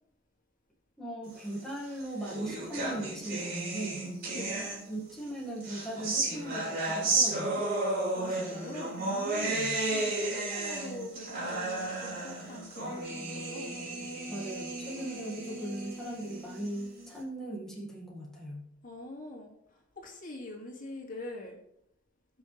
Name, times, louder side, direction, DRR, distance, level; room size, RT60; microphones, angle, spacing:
voice 1, 1.0-4.0 4.9-7.6 9.4-9.8 14.3-18.6, right 1 dB, ahead, -4 dB, 1.9 m, -39 dB
sound 1, 1.7-5.1 5.6-17.1, right 2 dB, 50° right, 4.3 m, -33 dB
voice 2, 8.1-13.9 18.8-21.6, left 2 dB, 45° left, 0 dB, 2.4 m, -44 dB
18.5 x 6.2 x 3.4 m, 0.76 s
head